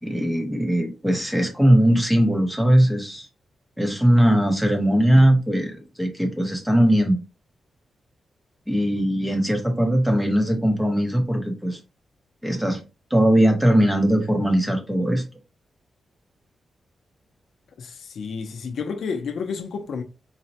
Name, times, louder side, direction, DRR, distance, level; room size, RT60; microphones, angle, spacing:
voice 1, 0.0-3.3 3.8-7.2 8.7-11.8 12.4-12.8 13.1-15.2, equal, 5° right, 0.7 m, -20 dB
voice 2, 17.8-20.0, left 5 dB, 70° left, 0.5 m, -30 dB
4.0 x 2.1 x 2.7 m
wide cardioid pair, 165°, 0 cm